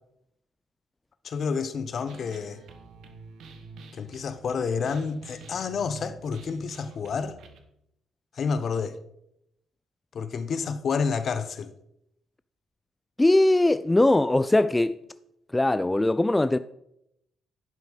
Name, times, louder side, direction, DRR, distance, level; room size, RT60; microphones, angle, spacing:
voice 1, 1.2-2.6 3.9-7.4 8.3-9.0 10.1-11.7, left 5 dB, 55° left, 0.9 m, -29 dB
sound 1, 2.1-7.6, right 4 dB, 65° right, 1.3 m, -47 dB
voice 2, 13.2-15.0 15.5-16.6, left 2 dB, 15° left, 0.4 m, -21 dB
10.5 x 5.8 x 5.6 m
hypercardioid pair, 45°, 0 cm